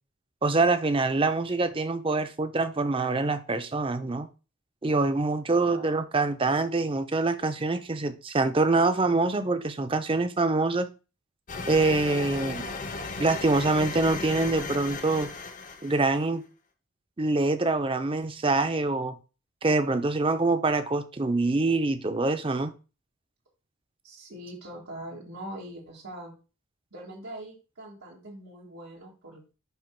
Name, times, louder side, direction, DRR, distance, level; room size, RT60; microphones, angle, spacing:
voice 1, 0.4-4.3 4.8-10.9 11.7-12.6 13.2-15.3 15.8-16.4 17.2-19.1 19.6-22.7, right 3 dB, 25° right, 9 dB, 0.5 m, -25 dB
sound 1, 11.5-16.2, left 3 dB, 35° left, 0.7 m, -36 dB
voice 2, 24.0-26.3 26.9-29.5, right 1 dB, 75° right, -5 dB, 1.9 m, -42 dB
11.0 x 4.5 x 2.2 m, 0.32 s
head